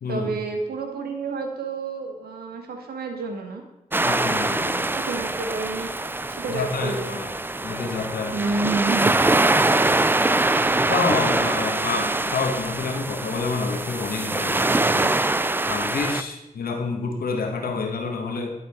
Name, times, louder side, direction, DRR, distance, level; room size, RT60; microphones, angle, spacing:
voice 1, 0.1-3.6 5.1-5.9 6.3-7.2 8.3-9.1, right 3 dB, 85° right, 4 dB, 1.2 m, -29 dB
sound 1, 3.9-16.2, right 2 dB, 15° right, 0.4 m, -23 dB
voice 2, 4.0-4.9 6.5-7.3 7.6-8.5 9.7-10.3 10.9-15.2 15.7-18.5, left 4 dB, 75° left, 3 dB, 1.4 m, -28 dB
11.0 x 4.3 x 4.2 m, 1.0 s
supercardioid pair, 45°, 16 cm